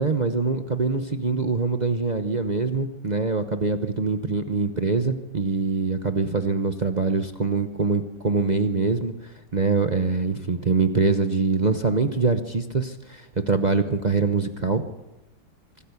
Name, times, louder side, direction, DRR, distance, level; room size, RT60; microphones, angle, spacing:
voice 1, 0.0-9.1 9.5-14.8, right 4 dB, 50° right, 7 dB, 0.5 m, -24 dB
25.0 x 13.0 x 8.3 m, 1.0 s
omnidirectional pair, 2.2 m